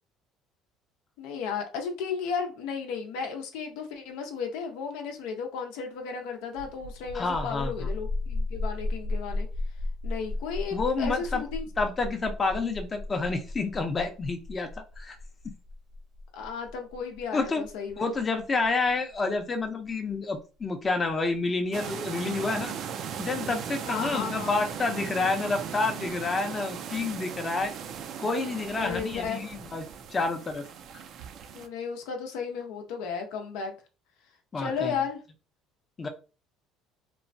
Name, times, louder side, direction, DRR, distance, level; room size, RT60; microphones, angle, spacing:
voice 1, 1.2-9.5 10.0-11.6 16.3-18.1 23.9-24.5 28.8-29.4 31.5-33.7 34.6-35.2, left 6 dB, 85° left, 0.6 m, -34 dB
sound 1, 6.5-19.9, left 2 dB, 85° right, 1.4 m, -35 dB
voice 2, 7.1-7.9 10.7-11.4 11.8-15.2 15.4-15.5 17.3-17.6 18.0-22.7 23.2-27.7 28.2-30.6 34.5-34.9 36.0-36.1, left 3 dB, 25° left, 0.5 m, -29 dB
sound 2, 21.7-31.7, right 7 dB, 60° right, 0.4 m, -38 dB
3.0 x 2.1 x 2.6 m
cardioid pair, 110°, 0 cm